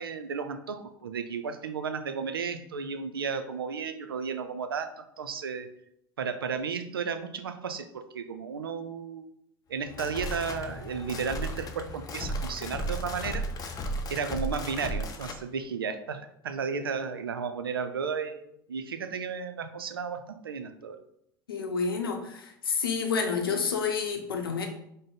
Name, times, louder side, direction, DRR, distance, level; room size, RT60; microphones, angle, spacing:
voice 1, 0.0-5.7 6.2-9.3 9.7-13.5 14.1-21.0, right 6 dB, 85° right, 9 dB, 0.4 m, -34 dB
sound 1, 9.7-15.4, equal, 30° left, 0.6 m, -35 dB
voice 2, 21.5-24.7, left 5 dB, 80° left, 4 dB, 0.7 m, -29 dB
5.0 x 2.0 x 3.8 m, 0.75 s
figure-of-eight pair, 70°, 12 cm